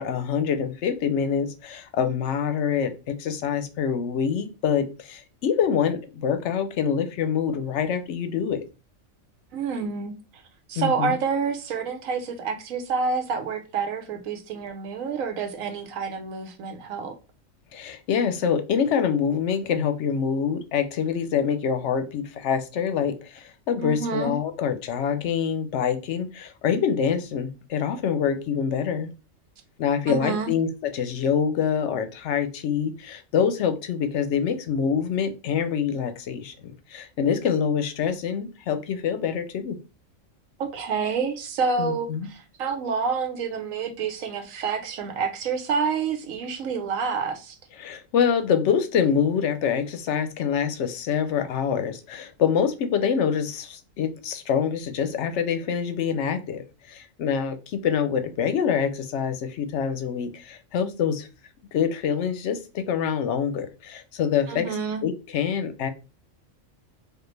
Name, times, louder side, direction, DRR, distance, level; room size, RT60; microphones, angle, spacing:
voice 1, 0.0-8.6 10.8-11.2 17.7-29.1 29.8-39.8 41.8-42.3 47.8-61.3 61.7-64.7 65.0-65.9, left 7 dB, 65° left, 0.8 m, -25 dB
voice 2, 9.5-10.1 10.7-17.1 23.8-24.4 30.1-30.5 40.6-47.6 64.5-65.0, right 5 dB, 80° right, 1.1 m, -28 dB
4.4 x 2.4 x 3.2 m
omnidirectional pair, 1.4 m